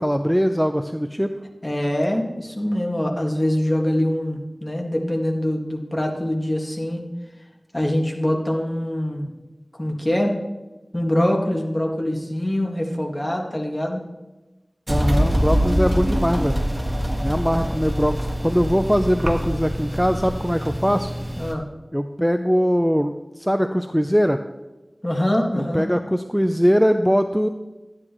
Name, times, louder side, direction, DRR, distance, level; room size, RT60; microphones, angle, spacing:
voice 1, 0.0-1.3 14.9-16.6 17.2-21.1 21.9-24.4 25.5-27.5, equal, ahead, 7 dB, 0.5 m, -21 dB
voice 2, 1.6-7.0 7.7-9.3 9.8-10.4 10.9-14.0 21.4-21.7 25.0-25.8, left 1 dB, 25° left, 1 dB, 1.8 m, -24 dB
sound 1, 14.9-21.5, equal, 25° right, 1.5 m, -24 dB
12.5 x 9.7 x 3.1 m, 1.1 s
wide cardioid pair, 50°, 0 cm